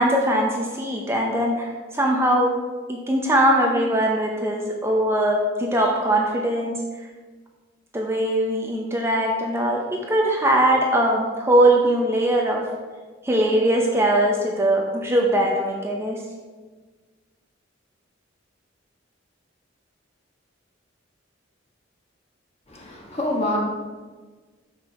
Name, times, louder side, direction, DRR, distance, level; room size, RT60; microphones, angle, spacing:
voice 1, 0.0-2.5 2.9-6.8 7.9-12.7 13.2-16.2, right 1 dB, 15° right, -1 dB, 0.7 m, -21 dB
voice 2, 22.7-23.6, left 1 dB, 35° left, -1 dB, 1.6 m, -26 dB
7.0 x 6.0 x 4.7 m, 1.4 s
head